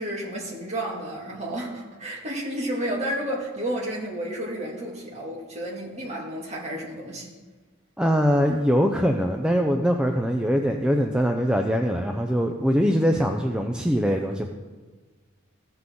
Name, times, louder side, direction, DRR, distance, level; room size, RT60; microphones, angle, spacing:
voice 1, 0.0-7.3, right 1 dB, 30° right, -3 dB, 2.3 m, -31 dB
voice 2, 8.0-14.4, equal, 5° right, 3 dB, 0.4 m, -22 dB
15.5 x 5.8 x 3.8 m, 1.4 s
head